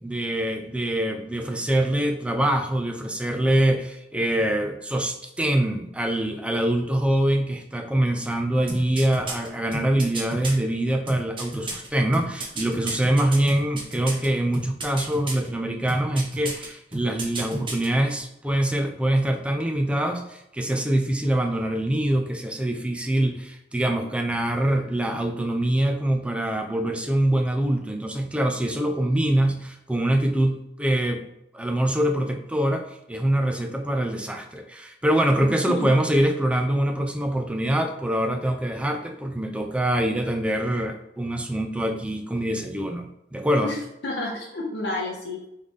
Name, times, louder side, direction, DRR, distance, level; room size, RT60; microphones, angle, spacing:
voice 1, 0.0-31.2 31.5-43.7, right 1 dB, 5° right, 5 dB, 0.4 m, -24 dB
sound 1, 8.7-10.5 11.1-14.3 14.5-15.5 15.9-16.7 16.9-17.9 18.2-18.3, right 2 dB, 30° right, 0.8 m, -32 dB
voice 2, 44.0-45.5, left 2 dB, 75° left, -2 dB, 0.7 m, -30 dB
3.9 x 3.2 x 3.6 m, 0.82 s
head